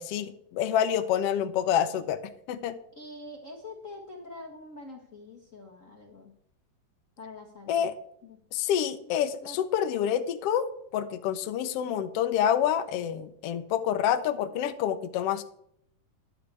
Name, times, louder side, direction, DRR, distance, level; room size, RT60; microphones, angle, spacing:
voice 1, 0.0-2.2 2.5-2.8 7.7-7.9 8.5-10.7 10.9-15.4, left 9 dB, 80° left, 9 dB, 1.3 m, -27 dB
voice 2, 2.9-6.3 7.2-7.9 8.2-8.4 9.4-9.6 9.9-10.0, left 2 dB, 45° left, -1 dB, 1.0 m, -45 dB
13.0 x 11.5 x 3.5 m, 0.69 s
omnidirectional pair, 3.9 m